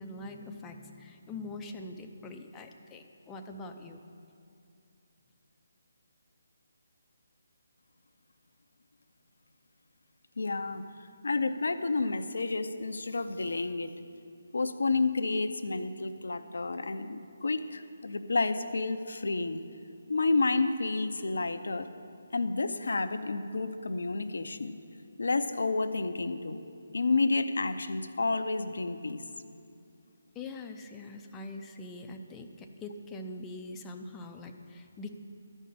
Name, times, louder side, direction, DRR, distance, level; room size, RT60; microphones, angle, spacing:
voice 1, 0.0-4.0 30.3-35.2, left 2 dB, 15° left, 4 dB, 0.6 m, -43 dB
voice 2, 10.4-10.9 11.2-13.9 14.5-19.6 20.1-21.9 22.3-24.8 25.2-26.6 26.9-29.2, left 3 dB, 75° left, 9 dB, 0.7 m, -30 dB
12.0 x 5.4 x 8.5 m, 2.5 s
figure-of-eight pair, 155°, 0 cm